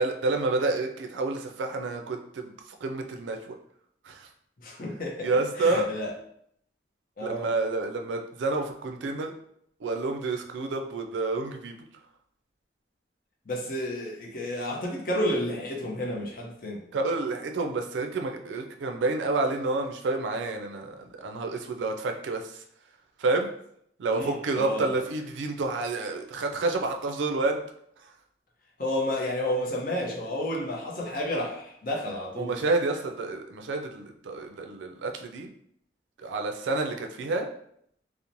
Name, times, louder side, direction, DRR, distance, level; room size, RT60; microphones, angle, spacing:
voice 1, 0.0-2.5 2.8-3.5 4.1-4.3 5.2-5.9 7.2-9.3 9.8-11.8 16.9-22.6 23.2-23.5 24.0-27.6 32.4-35.5 36.2-37.5, right 3 dB, 90° right, 4 dB, 0.4 m, -29 dB
voice 2, 4.6-5.3 5.6-6.1 7.2-7.5 13.5-16.8 24.1-25.0 28.8-32.5, left 1 dB, 50° left, -2 dB, 0.6 m, -31 dB
2.9 x 2.0 x 2.5 m, 0.70 s
head